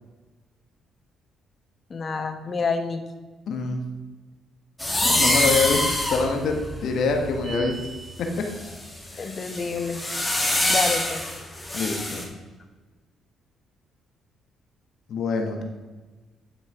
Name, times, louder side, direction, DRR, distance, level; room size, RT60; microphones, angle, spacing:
voice 1, 1.9-3.0 9.2-10.0 10.7-11.2, left 4 dB, 45° left, 7 dB, 1.3 m, -28 dB
voice 2, 3.5-3.8 5.0-5.8 6.1-7.7 9.1-9.3 11.7-12.2 15.1-15.6, left 4 dB, 70° left, 3 dB, 1.5 m, -25 dB
sound 1, 4.8-7.7 8.3-12.2, left 1 dB, 15° left, 2.5 m, -25 dB
sound 2, 7.4-8.3, right 2 dB, 40° right, 1.4 m, -36 dB
10.0 x 6.2 x 4.9 m, 1.3 s
supercardioid pair, 55°, 0 cm